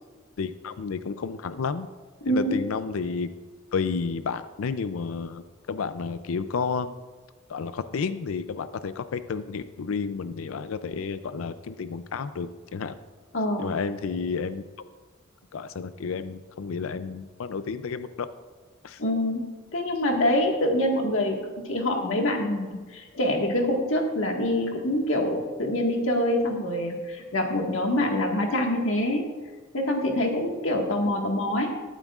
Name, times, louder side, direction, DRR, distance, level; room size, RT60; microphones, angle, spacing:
voice 1, 0.4-1.9 2.3-3.3 3.7-6.9 7.5-12.9 13.6-14.7 15.5-18.3 18.8-19.0, left 5 dB, 90° left, 12 dB, 0.4 m, -31 dB
voice 2, 2.2-2.6 13.3-13.8 19.0-19.4 19.7-21.4 21.7-29.3 29.7-31.7, left 1 dB, 70° left, 1 dB, 1.7 m, -25 dB
19.0 x 9.0 x 2.4 m, 1.4 s
head